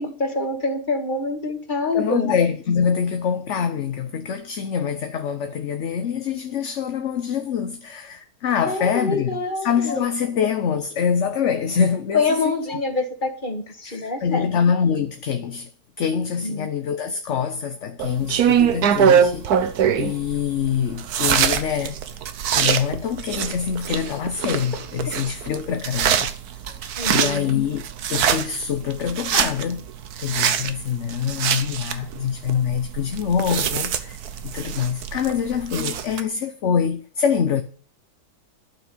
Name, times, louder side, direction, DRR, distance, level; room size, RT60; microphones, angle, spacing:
voice 1, 0.0-2.3 8.7-10.0 12.1-14.6 16.4-16.7 27.0-27.6, left 3 dB, 30° left, 2.3 m, -26 dB
voice 2, 1.9-12.6 13.8-15.7 16.0-22.0 22.5-26.3 26.7-26.8 27.1-27.8 28.1-29.9 30.2-34.2 34.4-37.6, left 7 dB, 55° left, 1.0 m, -25 dB
sound 1, 18.0-36.2, right 8 dB, 70° right, 1.4 m, -24 dB
12.0 x 6.1 x 8.9 m
omnidirectional pair, 1.7 m